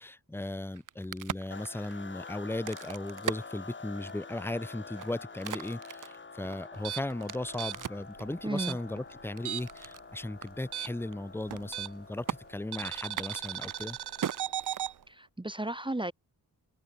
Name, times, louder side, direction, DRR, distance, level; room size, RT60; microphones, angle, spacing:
voice 1, 0.0-14.0, left 1 dB, 5° left, 0.7 m, -37 dB
Crack, 0.6-4.3 4.8-8.1 8.7-10.0 10.4-10.5 10.8-11.1 11.4-11.9 12.3-12.4 13.0-15.3, right 9 dB, 55° right, 0.8 m, -40 dB
sound 1, 1.5-14.9, left 4 dB, 30° left, 1.6 m, -48 dB
sound 2, 6.7-9.9 10.1-12.2 12.7-14.9, right 11 dB, 85° right, 0.9 m, -37 dB
voice 2, 8.4-8.8 15.1-16.1, right 1 dB, 10° right, 1.4 m, -34 dB
wide cardioid pair, 100°, 39 cm